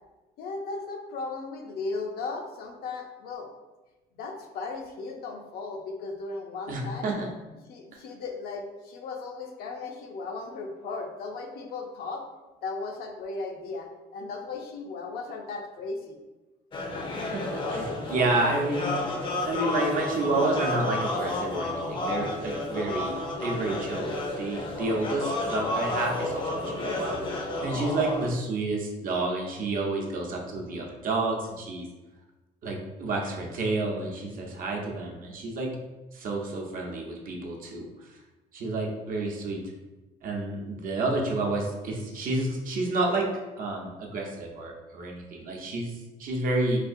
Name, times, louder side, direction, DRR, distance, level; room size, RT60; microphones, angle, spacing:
voice 1, 0.4-3.5 4.1-7.1 7.7-12.2 12.6-13.9 14.1-16.2, left 3 dB, 70° left, 2 dB, 0.6 m, -36 dB
voice 2, 6.7-7.3 17.3-19.0 19.4-31.8 32.6-35.7 36.1-38.2 38.5-39.6 40.2-43.3 43.6-46.8, right 2 dB, 55° right, 0 dB, 0.7 m, -30 dB
sound 1, 16.7-28.3, left 2 dB, 30° left, 0.5 m, -31 dB
4.1 x 2.4 x 2.5 m, 1.1 s
cardioid pair, 110°, 17 cm